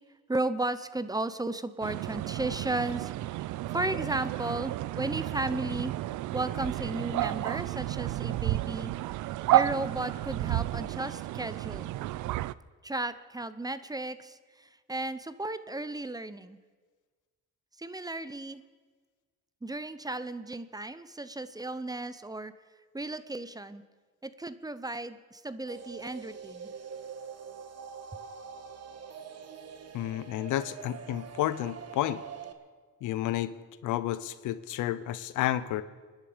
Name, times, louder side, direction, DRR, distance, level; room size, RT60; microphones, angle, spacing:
voice 1, 0.3-3.4 3.7-6.0 6.3-8.9 9.5-11.9 12.8-16.6 17.8-18.6 19.6-22.5 22.9-23.8 24.2-26.7, right 2 dB, 10° right, 14 dB, 0.7 m, -34 dB
sound 1, 1.8-12.5, right 15 dB, 75° right, 0.5 m, -31 dB
sound 2, 25.7-32.5, right 6 dB, 55° right, 1.5 m, -44 dB
voice 2, 29.9-32.2 33.0-33.5 33.8-35.8, left 13 dB, 90° left, 14 dB, 0.8 m, -31 dB
26.0 x 10.5 x 5.1 m, 1.5 s
cardioid pair, 90°, 30 cm